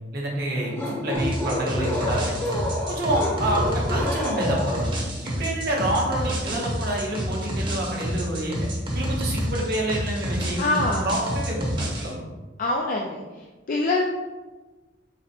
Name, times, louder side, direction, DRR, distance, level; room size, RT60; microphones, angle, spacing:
voice 1, 0.1-2.4 2.9-4.9 5.2-8.7 8.9-12.2, right 1 dB, 60° right, -2 dB, 1.0 m, -28 dB
sound 1, 0.6-5.0, left 1 dB, 10° left, 0.7 m, -29 dB
sound 2, 1.2-12.1, equal, 25° right, 0.7 m, -29 dB
voice 2, 10.6-11.1 12.6-13.2 13.7-14.0, left 2 dB, 45° left, -1 dB, 0.4 m, -23 dB
4.1 x 2.1 x 4.3 m, 1.2 s
head